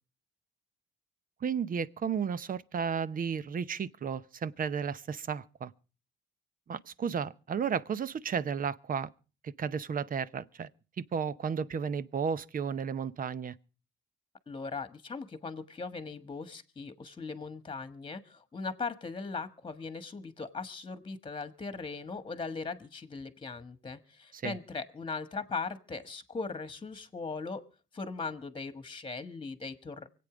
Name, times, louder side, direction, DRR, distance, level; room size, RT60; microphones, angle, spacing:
voice 1, 1.4-5.7 6.7-9.1 9.4-10.7 11.0-13.5 24.3-24.6, right 6 dB, 45° right, 0.8 m, -33 dB
voice 2, 14.5-27.6 27.9-30.1, left 4 dB, 25° left, 1.5 m, -39 dB
24.5 x 8.7 x 5.0 m
cardioid pair, 90°, 20 cm